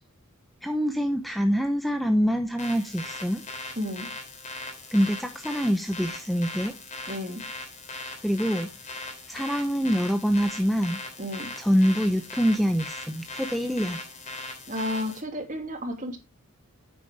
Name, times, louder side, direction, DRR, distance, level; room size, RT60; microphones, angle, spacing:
voice 1, 0.6-3.4 4.9-6.7 8.2-8.7 9.3-11.0 11.6-14.0, equal, ahead, 6 dB, 0.7 m, -25 dB
sound 1, 2.6-15.2, left 2 dB, 35° left, 3.4 m, -39 dB
voice 2, 3.8-4.1 7.1-7.4 11.2-11.5 14.7-16.2, left 1 dB, 35° right, 4 dB, 2.6 m, -32 dB
9.7 x 8.7 x 3.3 m, 0.25 s
head